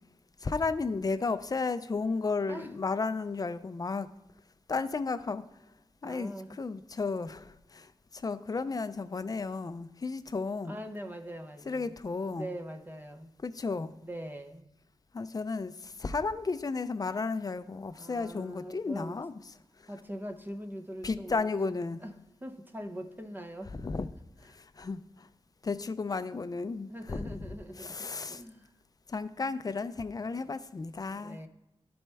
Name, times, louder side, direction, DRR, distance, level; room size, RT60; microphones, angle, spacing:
voice 1, 0.4-4.1 4.7-5.4 6.0-6.3 6.6-10.8 11.7-12.5 13.4-13.9 15.1-19.3 21.0-22.0 23.8-24.1 24.4-25.3 25.6-28.4 29.1-31.4, left 4 dB, 35° left, 11 dB, 0.4 m, -33 dB
voice 2, 6.0-6.6 10.6-11.9 12.3-13.3 14.0-14.7 18.0-19.2 19.9-21.5 22.0-22.1 22.4-23.7 26.9-28.7 30.4-30.6 31.1-31.5, equal, 20° right, 6 dB, 0.7 m, -42 dB
12.0 x 4.3 x 3.4 m, 0.94 s
wide cardioid pair, 100°, 11 cm